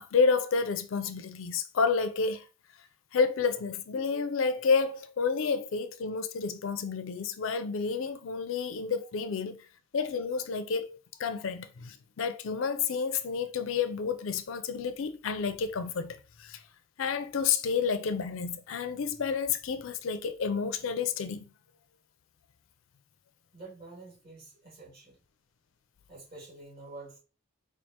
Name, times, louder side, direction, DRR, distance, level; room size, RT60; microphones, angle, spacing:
voice 1, 0.0-2.5 3.1-9.6 9.9-16.6 17.0-21.4, left 5 dB, 75° left, 0.4 m, -30 dB
voice 2, 23.5-25.2 26.1-27.2, right 3 dB, 45° right, 1.9 m, -48 dB
4.5 x 2.4 x 2.8 m
head